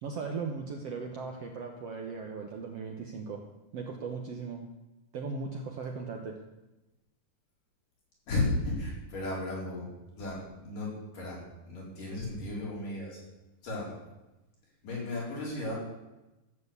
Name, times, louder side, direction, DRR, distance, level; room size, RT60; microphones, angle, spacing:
voice 1, 0.0-3.4 3.7-4.6 5.1-6.3, right 4 dB, 60° right, 3 dB, 1.7 m, -38 dB
voice 2, 8.3-9.9 10.2-13.2 13.6-14.0 14.8-15.8, left 2 dB, 70° left, -5 dB, 6.2 m, -34 dB
13.5 x 7.7 x 8.2 m, 1.0 s
omnidirectional pair, 4.0 m